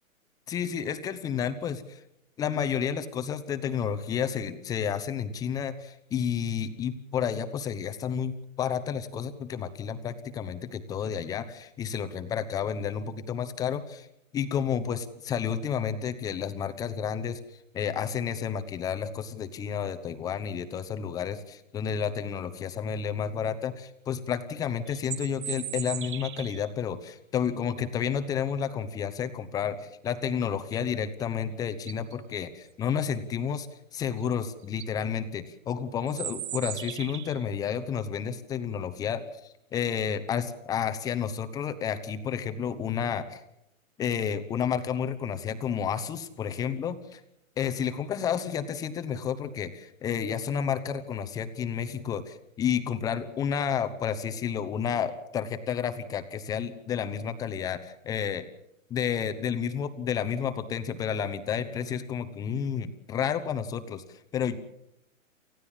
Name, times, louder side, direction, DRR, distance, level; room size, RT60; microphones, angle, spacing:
voice 1, 0.5-2.0 2.4-14.1 14.3-17.4 17.7-33.7 33.9-43.4 44.0-47.2 47.6-58.4 58.9-64.6, left 8 dB, 10° left, 9 dB, 0.9 m, -31 dB
sound 1, 24.9-26.7 31.2-31.3 31.7-32.1 34.2-34.3 34.6-34.9 36.1-37.5, right 12 dB, 35° right, 1.3 m, -37 dB
29.0 x 15.0 x 7.3 m, 0.81 s
hypercardioid pair, 155°, 41 cm